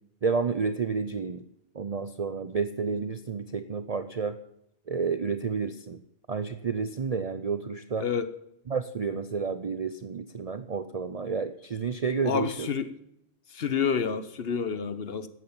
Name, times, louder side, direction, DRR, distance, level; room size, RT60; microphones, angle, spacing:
voice 1, 0.2-1.4 1.7-4.4 4.9-6.0 6.3-8.1 8.7-12.7, right 5 dB, 45° right, 11 dB, 0.5 m, -30 dB
voice 2, 8.0-8.3 12.2-12.9 13.5-15.3, left 6 dB, 55° left, 13 dB, 1.0 m, -29 dB
12.5 x 9.4 x 8.7 m, 0.78 s
omnidirectional pair, 1.3 m